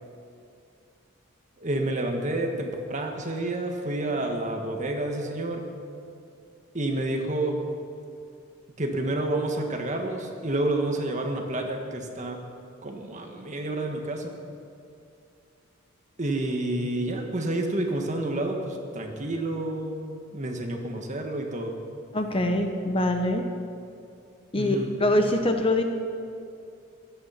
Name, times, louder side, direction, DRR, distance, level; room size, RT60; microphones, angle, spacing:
voice 1, 1.6-5.6 6.7-7.5 8.8-12.4 12.8-14.3 16.2-21.8 24.6-24.9, right 1 dB, 35° right, 2 dB, 1.6 m, -29 dB
voice 2, 22.1-23.5 24.5-25.8, left 1 dB, 25° left, 5 dB, 0.9 m, -24 dB
16.0 x 12.5 x 5.8 m, 2.5 s
head